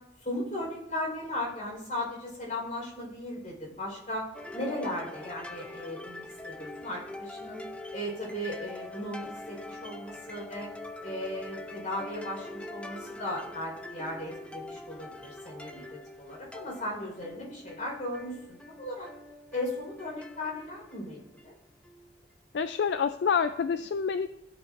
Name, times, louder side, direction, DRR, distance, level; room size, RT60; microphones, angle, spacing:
voice 1, 0.2-4.3 4.5-7.7 7.9-10.7 11.0-19.1 19.5-21.5, left 1 dB, 45° left, -2 dB, 4.3 m, -37 dB
sound 1, 4.3-22.2, left 1 dB, 5° left, 0.6 m, -44 dB
voice 2, 22.5-24.3, left 6 dB, 70° left, 11 dB, 0.4 m, -27 dB
15.5 x 8.3 x 2.5 m, 0.84 s
head